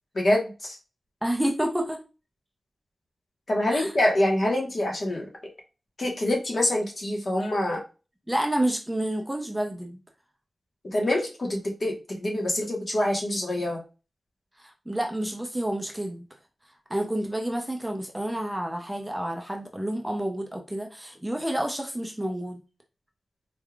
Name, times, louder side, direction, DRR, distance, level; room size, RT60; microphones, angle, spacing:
voice 1, 0.1-0.8 3.5-5.3 6.0-7.8 10.8-13.8, left 1 dB, 50° left, 0 dB, 1.3 m, -25 dB
voice 2, 1.2-2.0 3.7-3.9 8.3-10.0 14.6-16.3 16.9-22.6, right 1 dB, 10° right, 2 dB, 0.6 m, -29 dB
4.3 x 3.3 x 2.4 m, 0.31 s
wide cardioid pair, 130°, 0 cm